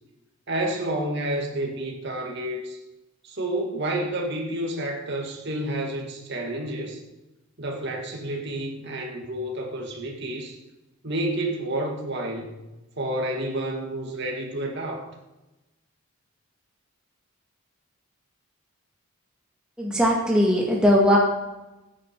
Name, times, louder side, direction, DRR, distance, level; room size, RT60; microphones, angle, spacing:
voice 1, 0.5-2.8 3.2-7.0 7.6-10.6 11.0-12.6 13.0-15.1, right 1 dB, 55° right, 1 dB, 2.0 m, -30 dB
voice 2, 19.8-21.2, equal, 5° right, -3 dB, 1.8 m, -19 dB
15.0 x 9.7 x 4.6 m, 1.0 s
head